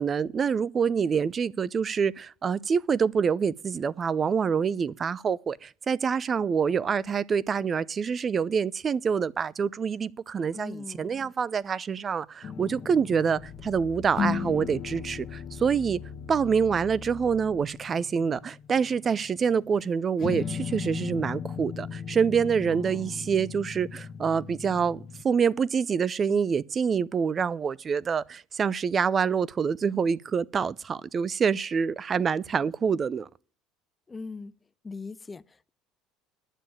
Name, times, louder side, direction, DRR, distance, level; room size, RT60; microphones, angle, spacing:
voice 1, 0.0-16.0 16.3-33.3, right 6 dB, 35° right, 0.5 m, -26 dB
voice 2, 10.5-11.1 22.7-23.2 34.1-34.5 34.8-35.7, left 4 dB, 20° left, 0.5 m, -41 dB
sound 1, 12.4-13.9 14.1-19.9 20.2-25.2, left 7 dB, 45° left, 1.0 m, -37 dB
sound 2, 13.4-17.7 18.2-18.3, left 6 dB, 90° left, 1.7 m, -44 dB
10.0 x 7.0 x 9.1 m
supercardioid pair, 105°, 0 cm